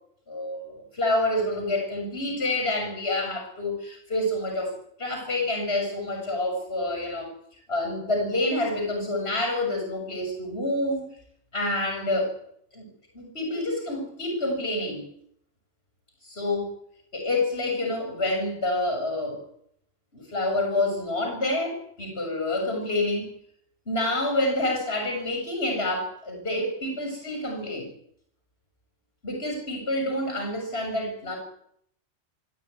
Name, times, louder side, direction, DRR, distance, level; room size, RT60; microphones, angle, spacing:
voice 1, 0.3-4.7 5.0-7.3 7.7-11.0 11.5-12.3 12.7-12.9 13.1-15.1 16.2-16.7 17.1-19.4 20.1-23.3 23.9-27.9 29.2-31.4, left 1 dB, 55° left, 3 dB, 7.1 m, -28 dB
25.0 x 14.5 x 9.6 m, 0.69 s
omnidirectional pair, 1.2 m